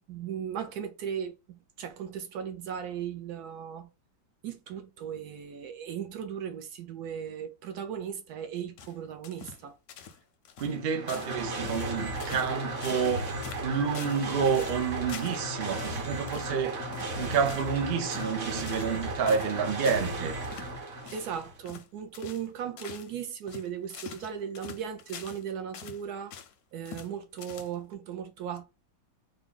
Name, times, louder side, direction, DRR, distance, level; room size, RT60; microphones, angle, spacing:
voice 1, 0.0-1.4 1.8-3.9 4.4-9.8 21.1-26.4 26.7-28.6, right 8 dB, 70° right, 0.9 m, -37 dB
sound 1, 8.8-9.6 9.9-10.2 10.4-10.8 11.1-11.4 11.6-12.5 12.8-13.1 13.4-14.3 14.5-15.4 15.8-16.0 16.3-16.5 16.9-17.7 18.0-18.3 18.7-19.0 19.3-19.5 19.8-20.1 20.4-20.7 21.0-21.3 21.7-21.9 22.1-22.5 22.8-23.1 23.5-25.4 25.7-26.5 26.9-27.1 27.4-27.9, left 7 dB, 70° left, 0.9 m, -45 dB
voice 2, 10.6-13.3 13.6-16.9 17.2-20.4, right 6 dB, 90° right, 0.5 m, -29 dB
sound 2, 10.8-21.6, right 2 dB, 45° right, 1.2 m, -35 dB
3.6 x 2.3 x 3.7 m
omnidirectional pair, 2.1 m